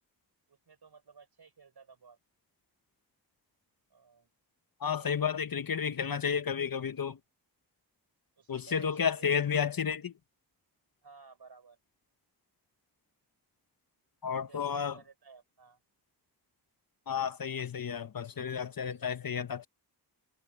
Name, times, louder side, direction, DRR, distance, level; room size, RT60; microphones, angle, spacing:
voice 1, 0.5-2.2 3.9-4.3 5.0-5.6 8.4-9.3 11.0-11.8 14.5-15.8, right 5 dB, 70° right, 5.8 m, -55 dB
voice 2, 4.8-7.2 8.5-10.1 14.2-15.0 17.1-19.7, left 7 dB, 60° left, 1.1 m, -32 dB
wide cardioid pair, 85°, 40 cm